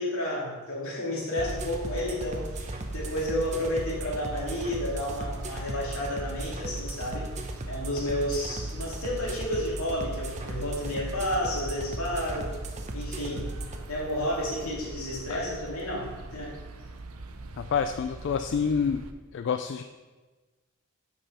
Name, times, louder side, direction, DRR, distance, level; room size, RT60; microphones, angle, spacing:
voice 1, 0.0-7.3 7.7-12.5 12.9-13.5 13.9-16.5, left 1 dB, 80° left, -4 dB, 2.4 m, -31 dB
sound 1, 1.4-13.8, right 2 dB, 35° right, 0.7 m, -36 dB
sound 2, 1.4-19.1, right 2 dB, 85° right, 0.6 m, -44 dB
voice 2, 17.6-19.0 19.3-19.8, left 6 dB, 55° left, 8 dB, 0.3 m, -27 dB
7.1 x 5.4 x 5.4 m, 1.3 s
head